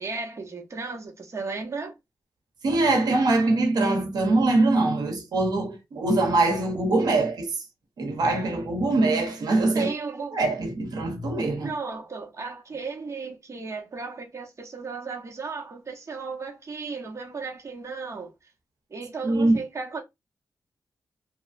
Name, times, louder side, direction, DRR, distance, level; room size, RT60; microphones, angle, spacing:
voice 1, 0.0-1.9 9.7-10.4 11.6-18.3 18.9-20.0, right 4 dB, 45° right, 1.0 m, -35 dB
voice 2, 2.6-7.6 8.0-9.9 10.3-11.7 19.2-19.6, right 2 dB, 80° right, 0.9 m, -23 dB
2.9 x 2.3 x 2.5 m
cardioid pair, 65°, 7 cm